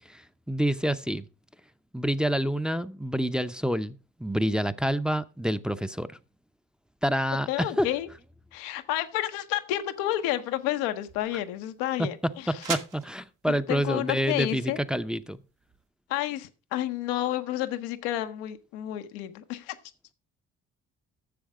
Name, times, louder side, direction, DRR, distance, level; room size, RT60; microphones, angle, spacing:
voice 1, 0.5-1.3 1.9-6.1 7.0-7.9 12.0-12.1 12.5-15.4, equal, ahead, 0.6 m, -27 dB
voice 2, 7.5-8.1 8.5-12.7 13.5-14.8 16.1-19.8, left 13 dB, 90° left, 0.9 m, -30 dB
sound 1, 9.9-15.9, right 8 dB, 65° right, 1.4 m, -43 dB
10.5 x 7.2 x 4.8 m
supercardioid pair, 55°, 34 cm